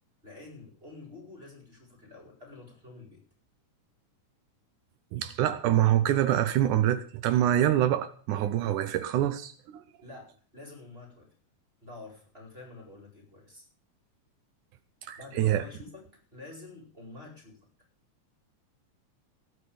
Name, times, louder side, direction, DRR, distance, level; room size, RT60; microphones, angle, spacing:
voice 1, 0.2-3.2 10.0-11.3 11.8-13.6 15.2-16.0 16.3-17.6, left 2 dB, 15° right, 1 dB, 5.0 m, -48 dB
voice 2, 5.1-9.8 15.0-15.6, right 12 dB, 80° right, 11 dB, 2.3 m, -25 dB
18.0 x 6.2 x 8.7 m, 0.43 s
omnidirectional pair, 3.6 m